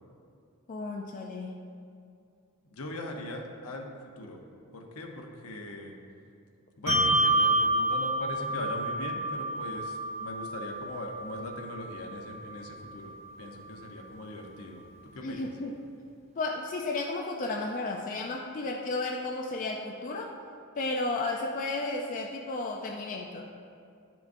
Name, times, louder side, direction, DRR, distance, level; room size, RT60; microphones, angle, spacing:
voice 1, 0.7-1.6 15.2-15.7 16.4-20.3 20.8-23.5, left 2 dB, 35° left, 1 dB, 0.4 m, -33 dB
voice 2, 2.7-3.9 4.2-4.4 4.7-5.9 6.8-14.8 15.1-15.5, left 1 dB, 70° left, 2 dB, 0.8 m, -40 dB
Bell, 6.9-13.7, right 1 dB, 30° right, 0.8 m, -29 dB
10.5 x 6.1 x 2.6 m, 2.5 s
head